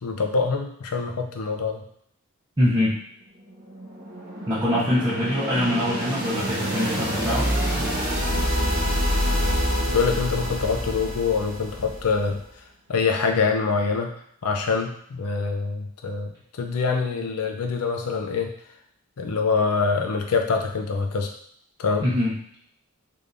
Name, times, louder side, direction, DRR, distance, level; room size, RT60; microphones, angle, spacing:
voice 1, 0.0-1.8 9.9-12.4 12.9-14.1 14.4-18.5 19.2-21.3 21.8-22.1, left 5 dB, 90° left, 3 dB, 0.5 m, -25 dB
voice 2, 2.6-3.0 4.5-7.5 22.0-22.3, left 1 dB, 20° right, -10 dB, 0.6 m, -23 dB
sound 1, 3.4-12.3, equal, 40° right, 1.0 m, -26 dB
3.4 x 3.3 x 2.6 m, 0.67 s
head